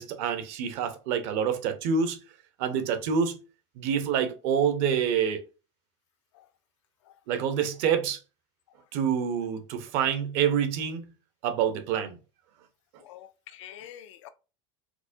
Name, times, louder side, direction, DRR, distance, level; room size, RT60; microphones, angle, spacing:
voice 1, 0.0-2.2 2.6-3.4 3.8-5.4 7.3-8.2 8.9-11.1 11.4-12.2, right 7 dB, 50° right, 0.8 m, -27 dB
voice 2, 13.0-14.3, left 11 dB, 80° left, 0.5 m, -47 dB
4.6 x 2.1 x 2.6 m
supercardioid pair, 160°, 15 cm